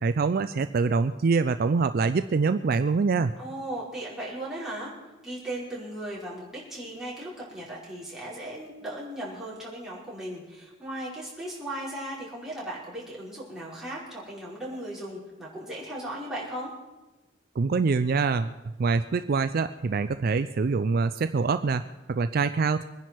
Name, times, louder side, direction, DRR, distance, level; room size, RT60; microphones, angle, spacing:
voice 1, 0.0-3.3 17.6-18.5 18.8-21.8 22.1-22.9, right 4 dB, 50° right, 11 dB, 0.4 m, -25 dB
voice 2, 3.4-4.9 5.2-16.7, right 1 dB, ahead, -8 dB, 5.1 m, -37 dB
23.5 x 10.5 x 4.6 m, 1.1 s
head